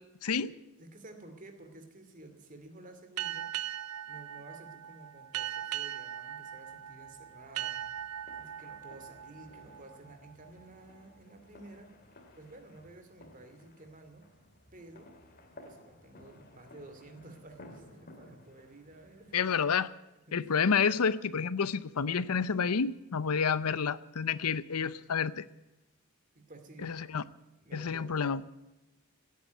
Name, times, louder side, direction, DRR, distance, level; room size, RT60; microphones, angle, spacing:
voice 1, 0.8-3.5 4.1-7.8 8.4-12.0 12.3-14.3 14.7-15.1 15.6-19.3 20.3-20.7 26.3-27.0 27.6-28.2, right 2 dB, 35° right, 6 dB, 2.4 m, -52 dB
sound 1, 3.2-10.5, right 11 dB, 80° right, 0.7 m, -40 dB
sound 2, 6.1-19.6, left 1 dB, 40° left, 2.3 m, -57 dB
voice 2, 19.3-19.9 20.3-25.4 26.8-27.2 27.7-28.4, left 6 dB, 85° left, 17 dB, 0.6 m, -29 dB
16.5 x 9.5 x 9.2 m, 1.0 s
head